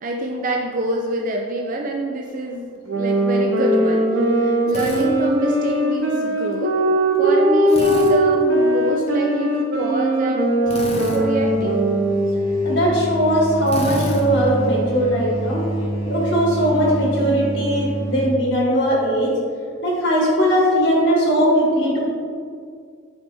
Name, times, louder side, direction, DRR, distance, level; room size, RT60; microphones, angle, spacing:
voice 1, 0.0-6.7 7.2-11.8, right 2 dB, 40° right, 0 dB, 0.5 m, -26 dB
sound 1, 2.9-12.5, right 1 dB, 75° right, 1.0 m, -19 dB
Drill, 4.7-5.1 7.7-8.2 10.7-11.2 13.7-14.2, left 1 dB, 30° left, 0.8 m, -30 dB
sound 2, 10.6-18.4, right 1 dB, 85° left, 1.7 m, -28 dB
voice 2, 12.6-15.6 16.0-19.3 19.8-22.0, equal, 55° left, -3 dB, 1.8 m, -19 dB
8.7 x 5.2 x 3.4 m, 2.2 s
head